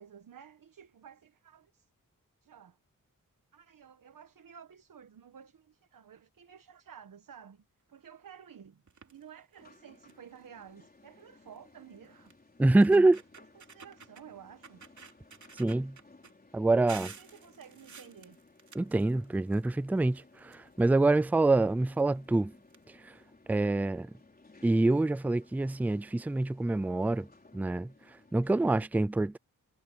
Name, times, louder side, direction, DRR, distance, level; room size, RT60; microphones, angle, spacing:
voice 1, 0.0-1.9 2.4-2.8 3.5-12.3 13.4-14.8 17.2-18.4, right 8 dB, 80° right, 1.3 m, -53 dB
sound 1, 8.9-9.2 9.7-9.8 10.1-10.4 11.6-11.7 12.3-12.4 12.7-14.2 14.6-16.3 16.9-19.7 20.0-21.1 22.0-22.1 22.3-22.4 22.7-22.8, right 5 dB, 60° right, 2.8 m, -50 dB
sound 2, 9.6-28.9, left 3 dB, 30° left, 4.1 m, -60 dB
voice 2, 12.6-13.2 15.6-16.0 16.5-17.1 18.7-22.5 23.0-23.1 23.5-24.1 24.6-27.3 27.5-27.9 28.3-29.4, right 2 dB, 5° right, 0.3 m, -26 dB
wide cardioid pair, 145°, 32 cm